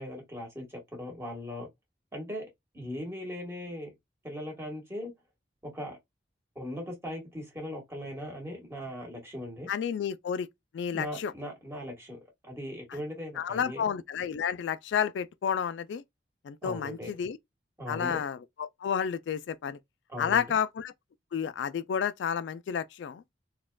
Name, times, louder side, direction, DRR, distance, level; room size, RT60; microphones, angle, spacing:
voice 1, 0.0-1.7 2.1-2.4 2.7-3.9 4.2-5.1 5.6-6.0 6.5-9.7 10.9-13.8 16.6-17.1 17.8-18.2 20.1-20.6, left 1 dB, 15° right, 1.6 m, -39 dB
voice 2, 9.7-10.5 10.7-11.3 13.4-16.0 16.4-17.4 17.9-19.8 20.2-20.9 21.3-23.2, left 7 dB, 85° left, 0.3 m, -31 dB
4.1 x 2.4 x 2.2 m
head